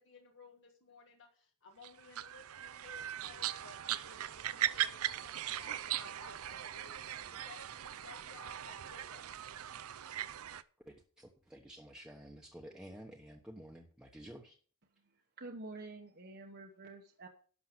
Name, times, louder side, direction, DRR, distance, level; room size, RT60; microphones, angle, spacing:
voice 1, 0.0-9.3, left 3 dB, 55° left, 2 dB, 1.6 m, -57 dB
sound 1, 1.8-10.6, right 11 dB, 70° right, 0.5 m, -39 dB
voice 2, 10.9-14.6, equal, 5° right, -1 dB, 1.1 m, -51 dB
voice 3, 15.4-17.3, right 2 dB, 45° right, 3 dB, 1.1 m, -48 dB
11.5 x 6.5 x 6.0 m, 0.43 s
head